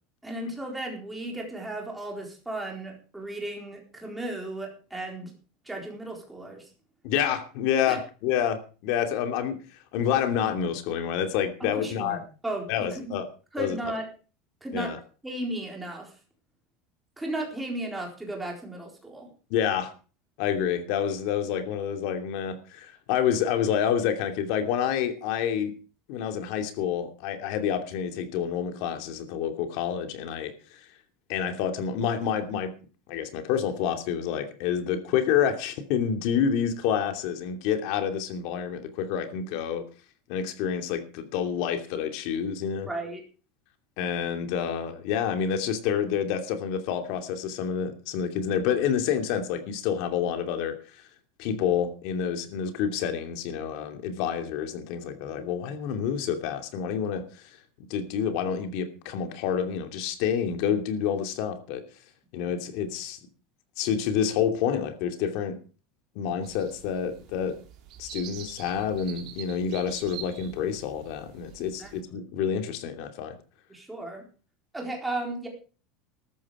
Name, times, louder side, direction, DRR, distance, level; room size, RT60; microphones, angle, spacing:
voice 1, 0.2-5.3 5.6-6.7 7.9-8.0 11.6-13.1 13.5-14.0 14.6-14.9 15.2-16.1 17.2-19.3 42.9-43.2 71.8-71.9 73.7-74.2 74.7-75.5, right 1 dB, 5° right, 0 dB, 4.2 m, -35 dB
voice 2, 7.0-9.6 9.9-12.2 12.7-13.3 13.6-13.8 14.7-15.0 19.5-19.9 20.4-25.7 26.1-30.8 31.3-32.7 33.1-39.8 40.3-42.9 44.0-50.8 51.4-57.2 57.9-61.8 62.3-63.2 63.8-65.6 66.1-67.6 68.0-73.4, left 8 dB, 50° left, 7 dB, 2.7 m, -28 dB
sound 1, 66.4-72.0, right 10 dB, 40° right, 3.2 m, -46 dB
13.5 x 13.0 x 5.0 m, 0.37 s
supercardioid pair, 175°, 0 cm